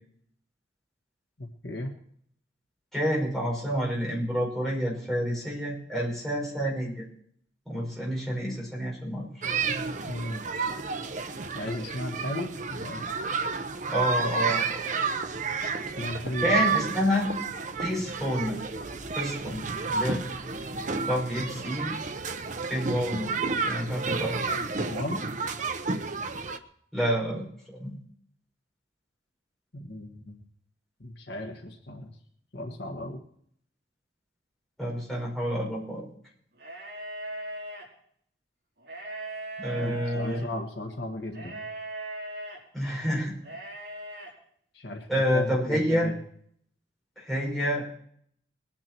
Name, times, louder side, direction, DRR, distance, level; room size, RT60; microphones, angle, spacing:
voice 1, 1.4-1.9 10.1-10.5 11.5-13.0 15.6-15.7 16.0-16.5 24.6-25.2 29.7-30.4 31.0-32.1 32.5-33.2 39.7-41.6 44.7-45.1 45.3-46.2, left 1 dB, 65° left, 3 dB, 1.6 m, -35 dB
voice 2, 2.9-7.1 7.7-9.4 13.9-14.9 16.1-17.3 17.8-18.6 19.1-20.2 20.7-21.9 22.7-23.4 23.7-24.6 26.9-28.0 34.8-36.1 39.6-40.4 42.7-43.4 45.1-46.1 47.2-47.8, equal, ahead, -5 dB, 5.4 m, -29 dB
sound 1, 9.4-26.6, right 4 dB, 40° right, 0.8 m, -31 dB
sound 2, 36.5-37.8 38.8-40.5 41.3-42.6 43.4-44.3, right 1 dB, 60° right, 5.0 m, -38 dB
21.0 x 10.0 x 4.5 m, 0.65 s
head